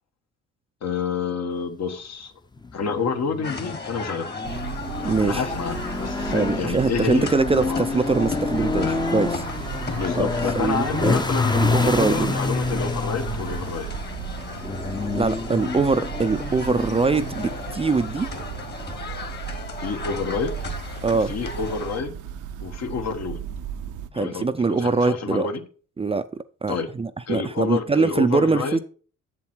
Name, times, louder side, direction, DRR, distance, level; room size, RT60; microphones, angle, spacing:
voice 1, 0.8-2.3 2.7-4.3 5.0-7.8 9.9-13.9 19.8-20.5 21.1-22.2 22.6-23.4 24.1-25.6 26.7-26.9 27.3-28.8, left 5 dB, 60° left, 1.4 m, -28 dB
sound 1, 2.6-19.2, left 3 dB, 15° left, 0.7 m, -29 dB
sound 2, 3.4-22.0, left 4 dB, 35° left, 1.6 m, -36 dB
sound 3, 4.4-24.1, right 8 dB, 90° right, 0.8 m, -36 dB
voice 2, 5.0-5.4 6.3-9.4 10.2-10.3 10.6-11.2 11.5-12.4 15.1-18.3 21.0-21.3 24.1-25.5 26.0-26.3 26.6-28.8, right 4 dB, 20° right, 0.4 m, -23 dB
7.4 x 7.2 x 4.6 m
cardioid pair, 90°, 30 cm